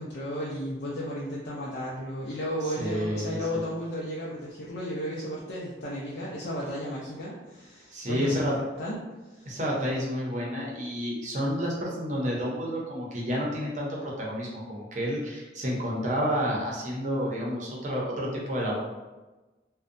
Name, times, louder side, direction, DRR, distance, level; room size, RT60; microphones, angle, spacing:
voice 1, 0.0-8.5 8.8-9.0 9.3-9.6, equal, 75° left, -5 dB, 0.4 m, -34 dB
voice 2, 2.8-3.6 7.9-8.5 9.5-18.8, equal, 45° right, -3 dB, 0.6 m, -30 dB
2.6 x 2.1 x 2.5 m, 1.1 s
head